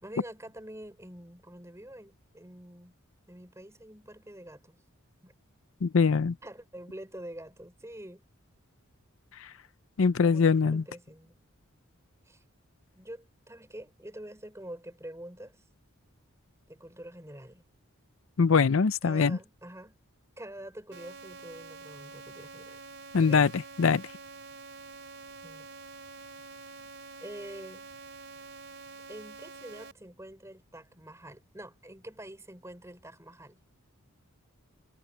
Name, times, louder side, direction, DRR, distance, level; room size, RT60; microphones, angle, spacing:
voice 1, 0.0-2.9 3.3-4.8 5.2-5.3 6.4-8.2 10.2-11.4 12.3-12.4 12.9-15.6 16.7-17.6 19.0-20.0 20.4-22.8 23.1-23.5 25.4-25.7 27.2-27.9 29.1-33.6, right 1 dB, 15° right, 5.4 m, -46 dB
voice 2, 5.8-6.3 10.0-10.8 18.4-19.4 23.1-23.5 23.8-24.0, left 5 dB, 70° left, 0.5 m, -22 dB
sound 1, 20.9-29.9, right 3 dB, 55° right, 3.8 m, -47 dB
head